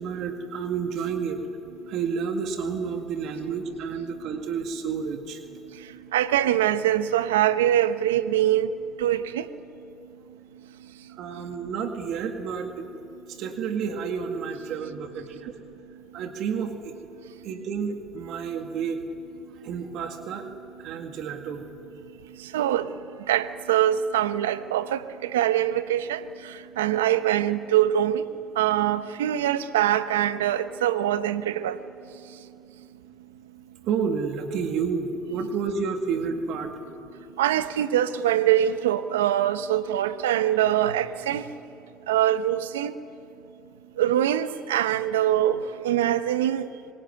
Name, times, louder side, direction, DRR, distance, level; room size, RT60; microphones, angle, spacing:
voice 1, 0.0-1.4 1.9-5.4 11.1-12.9 13.3-15.5 16.1-16.9 17.4-19.0 19.6-20.5 20.8-21.6 33.9-36.7, right 6 dB, 65° right, 2.0 m, -30 dB
voice 2, 5.7-8.7 9.0-9.5 22.4-22.9 23.3-28.2 28.5-31.8 37.4-41.4 42.1-42.9 44.0-46.7, right 11 dB, 90° right, 1.0 m, -23 dB
24.5 x 21.5 x 9.6 m
hypercardioid pair, 70°, 0 cm